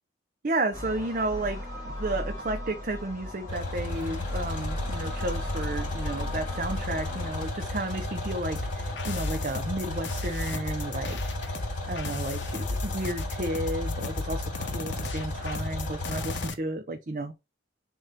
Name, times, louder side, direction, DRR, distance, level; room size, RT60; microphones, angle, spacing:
voice 1, 0.4-17.3, right 2 dB, 45° right, 0.7 m, -33 dB
sound 1, 0.7-7.4, left 1 dB, 15° left, 2.5 m, -36 dB
sound 2, 3.5-16.5, left 2 dB, 45° left, 3.1 m, -34 dB
sound 3, 8.6-16.5, left 3 dB, 65° left, 0.8 m, -36 dB
6.6 x 3.0 x 5.2 m
head